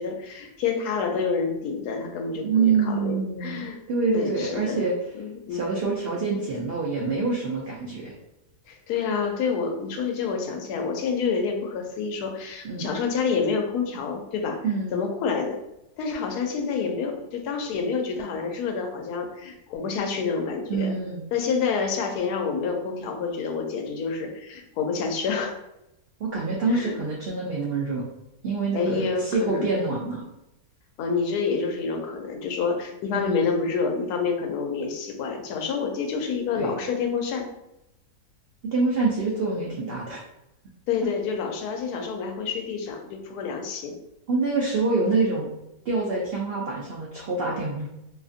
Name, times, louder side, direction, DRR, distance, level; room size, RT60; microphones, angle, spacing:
voice 1, 0.0-3.2 3.4-3.8 4.1-5.7 8.7-14.6 14.9-15.6 16.0-20.9 21.3-25.5 26.7-26.9 28.7-29.7 31.0-37.5 40.9-44.0, left 5 dB, 85° left, 3 dB, 1.1 m, -28 dB
voice 2, 2.4-4.9 5.5-8.1 12.6-12.9 14.6-15.0 20.7-21.2 26.2-28.0 28.4-30.2 33.1-33.4 36.6-36.7 38.6-40.2 44.3-45.5 45.9-47.9, right 4 dB, 80° right, -3 dB, 0.5 m, -26 dB
2.9 x 2.4 x 2.5 m, 0.88 s
omnidirectional pair, 1.6 m